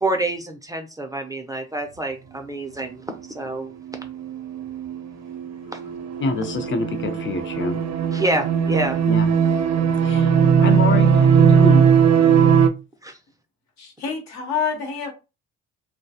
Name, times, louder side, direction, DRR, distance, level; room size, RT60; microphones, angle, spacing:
voice 1, 0.0-3.7 5.7-5.8 8.1-9.0 13.0-13.2, right 2 dB, 10° right, 0.5 m, -27 dB
sound 1, 3.9-12.7, right 7 dB, 65° right, 0.6 m, -18 dB
voice 2, 6.2-7.8 9.1-9.3 10.0-11.9, left 4 dB, 40° left, 0.7 m, -27 dB
voice 3, 13.8-15.1, left 6 dB, 70° left, 1.0 m, -27 dB
2.2 x 2.2 x 2.7 m
supercardioid pair, 65°, 29 cm